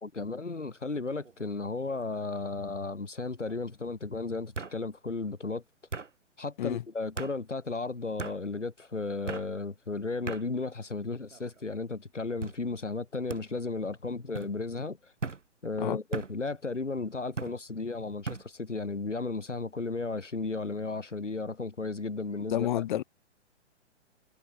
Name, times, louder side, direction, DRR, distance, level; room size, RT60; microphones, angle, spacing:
voice 1, 0.0-5.6 6.4-15.1 15.6-22.7, left 3 dB, 90° left, 1.6 m, -34 dB
sound 1, 1.1-1.5 1.9-2.4 3.5-3.6 4.5-4.8 5.9-6.1 7.2-7.3 8.2-8.4 9.3-9.5 10.3-10.4 11.2-11.6 12.4-12.6 13.3-13.4 14.3-14.5 15.2-15.4 16.1-16.3 17.4-17.6 18.2-18.4, right 4 dB, 85° right, 1.4 m, -37 dB
voice 2, 22.5-23.0, left 12 dB, 40° left, 1.3 m, -29 dB
figure-of-eight pair, 125°, 36 cm